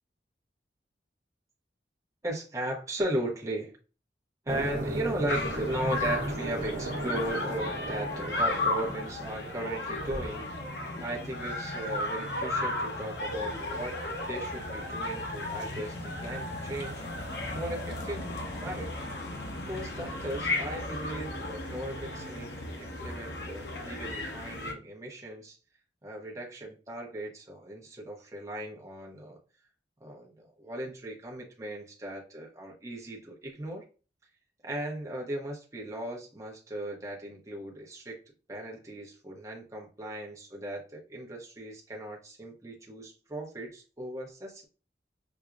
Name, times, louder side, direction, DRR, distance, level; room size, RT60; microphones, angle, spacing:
voice 1, 2.2-3.7 4.5-10.5 11.0-14.0 14.3-17.0 17.5-18.9 19.7-25.5 26.0-29.4 30.0-33.8 34.6-38.2 38.5-44.6, right 1 dB, 20° right, -2 dB, 0.7 m, -37 dB
sound 1, 4.5-10.3, right 1 dB, 65° right, 0.9 m, -36 dB
sound 2, 5.3-24.7, left 2 dB, 65° left, 0.8 m, -35 dB
5.8 x 2.0 x 2.4 m, 0.35 s
head